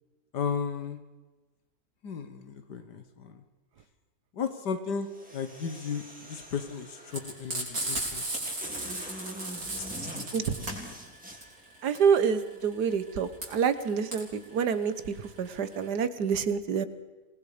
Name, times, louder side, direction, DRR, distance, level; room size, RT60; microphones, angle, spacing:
voice 1, 0.3-1.0 2.0-3.3 4.4-5.1 5.3-6.0 6.3-8.2 10.2-10.3 10.6-10.7, left 6 dB, 85° left, 8 dB, 2.0 m, -34 dB
sound 1, 5.0-7.4 8.0-8.1 8.4-11.4, equal, 5° right, 4.1 m, -43 dB
Frying (food), 7.1-15.9, right 2 dB, 55° right, 5.8 m, -36 dB
voice 2, 11.8-16.9, right 6 dB, 75° right, 12 dB, 1.8 m, -27 dB
27.0 x 20.0 x 5.1 m, 1.2 s
omnidirectional pair, 1.8 m